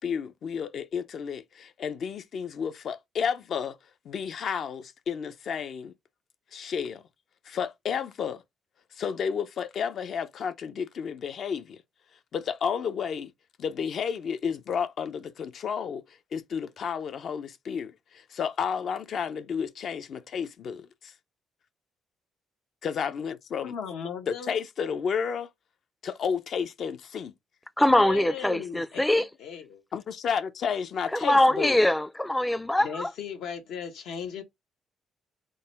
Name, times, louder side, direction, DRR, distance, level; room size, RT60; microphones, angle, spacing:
voice 1, 0.0-3.8 4.0-5.9 6.5-7.0 7.4-8.4 8.9-11.8 12.3-13.3 13.6-16.0 16.3-21.1 22.8-23.7 24.3-25.5 26.0-27.3 29.9-31.8, left 7 dB, 60° left, 0.5 m, -31 dB
voice 2, 23.6-24.6 28.0-29.8 32.8-34.4, left 7 dB, 85° left, 1.0 m, -37 dB
voice 3, 27.8-29.2 31.2-33.1, left 1 dB, 10° left, 0.4 m, -22 dB
3.8 x 2.2 x 3.9 m
cardioid pair, 90°, 0 cm